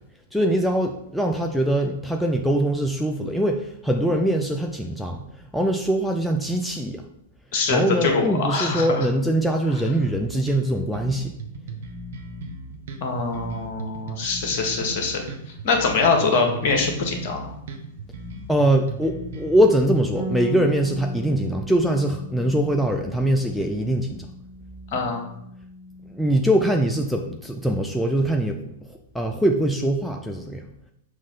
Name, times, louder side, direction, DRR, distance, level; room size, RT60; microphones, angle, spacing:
voice 1, 0.3-7.0 7.7-11.3 18.5-24.3 26.1-28.6 28.9-30.7, right 1 dB, ahead, 2 dB, 0.5 m, -22 dB
voice 2, 7.5-9.0 13.0-15.2 15.6-17.5 24.9-25.2, left 4 dB, 50° left, 3 dB, 1.4 m, -23 dB
sound 1, 10.0-19.6, right 2 dB, 65° right, 0.9 m, -37 dB
Bass guitar, 20.1-26.4, left 1 dB, 20° right, 2.0 m, -37 dB
6.4 x 3.1 x 5.6 m, 0.76 s
figure-of-eight pair, 100°, 0 cm